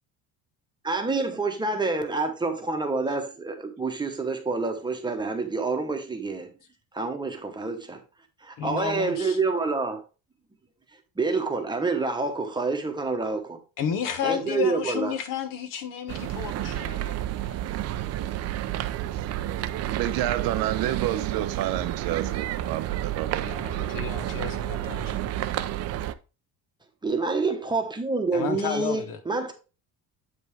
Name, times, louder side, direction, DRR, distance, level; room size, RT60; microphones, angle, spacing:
voice 1, 0.8-6.5 6.9-8.0 8.4-10.0 11.2-13.6 14.2-15.2 27.0-29.5, right 3 dB, 10° right, 1.1 m, -27 dB
voice 2, 8.6-9.4 13.8-17.6 23.4-25.2 28.3-29.2, left 8 dB, 60° left, 1.3 m, -32 dB
sound 1, 16.1-26.1, right 13 dB, 45° right, 0.5 m, -30 dB
voice 3, 19.9-23.5, right 13 dB, 70° right, 0.8 m, -29 dB
8.1 x 5.3 x 3.2 m
cardioid pair, 160°, 37 cm